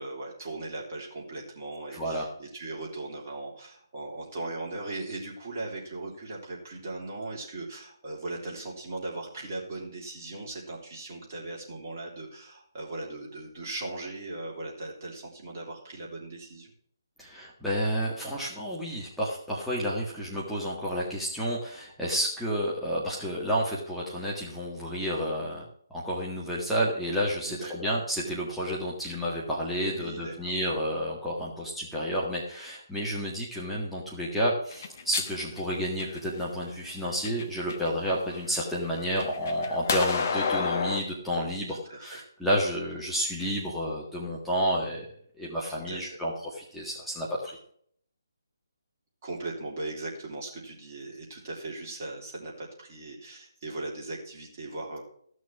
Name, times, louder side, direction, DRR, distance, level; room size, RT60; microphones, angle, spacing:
voice 1, 0.0-16.7 20.0-20.2 27.5-27.7 29.9-30.5 41.7-42.1 45.7-46.2 49.2-55.0, right 2 dB, 30° right, -2 dB, 3.5 m, -38 dB
voice 2, 1.9-2.3 17.2-25.6 25.9-45.1 45.4-47.6, equal, ahead, -7 dB, 1.7 m, -30 dB
sound 1, 34.7-36.4 37.0-37.9 38.3-41.0, left 5 dB, 35° left, 1.2 m, -30 dB
15.0 x 6.4 x 6.1 m, 0.63 s
figure-of-eight pair, 145°, 2 cm